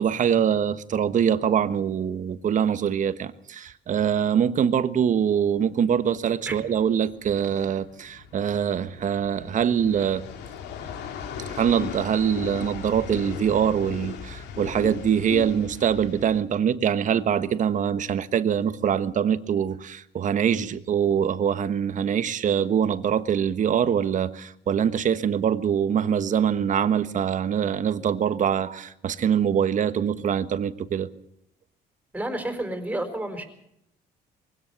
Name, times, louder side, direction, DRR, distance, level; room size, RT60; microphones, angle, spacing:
voice 1, 0.0-10.2 11.5-31.1, right 8 dB, 50° right, 1.4 m, -24 dB
sound 1, 5.6-16.4, left 7 dB, 80° left, 2.9 m, -37 dB
voice 2, 32.1-33.5, right 1 dB, 10° right, 4.7 m, -30 dB
22.5 x 17.0 x 7.0 m
cardioid pair, 110°, 17 cm